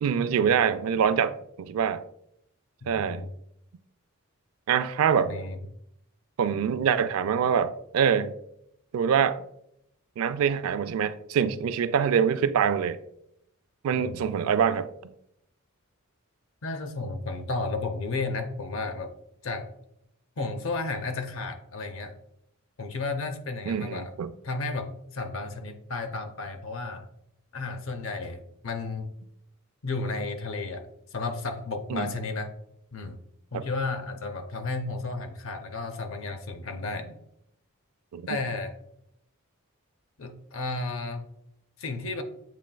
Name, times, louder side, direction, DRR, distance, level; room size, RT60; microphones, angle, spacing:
voice 1, 0.0-2.0 2.9-3.3 4.7-5.3 6.4-8.3 8.9-9.4 10.2-13.0 13.8-14.9 23.7-24.3 31.9-32.1 33.5-33.6 38.1-38.2, right 7 dB, 80° right, 0.3 m, -25 dB
voice 2, 2.8-3.3 5.3-5.6 13.9-14.2 16.6-19.1 19.4-19.7 20.4-22.2 22.8-24.1 24.4-27.1 27.5-29.1 29.8-32.5 32.9-33.2 33.5-37.2 38.3-38.8 40.2-41.3 41.8-42.2, left 3 dB, 65° left, 0.6 m, -33 dB
7.3 x 3.2 x 2.2 m
head